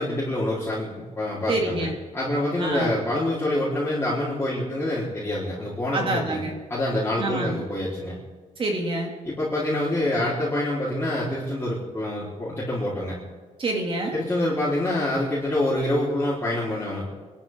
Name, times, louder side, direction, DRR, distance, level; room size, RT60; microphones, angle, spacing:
voice 1, 0.0-6.4 6.7-8.1 9.2-13.2 14.1-17.1, left 1 dB, 15° left, -9 dB, 4.1 m, -26 dB
voice 2, 1.5-1.9 2.6-2.9 5.9-6.5 7.2-7.6 8.6-9.1 13.6-14.2, right 2 dB, 40° right, 1 dB, 2.7 m, -26 dB
26.5 x 12.5 x 3.8 m, 1.3 s
cardioid pair, 150°, 14 cm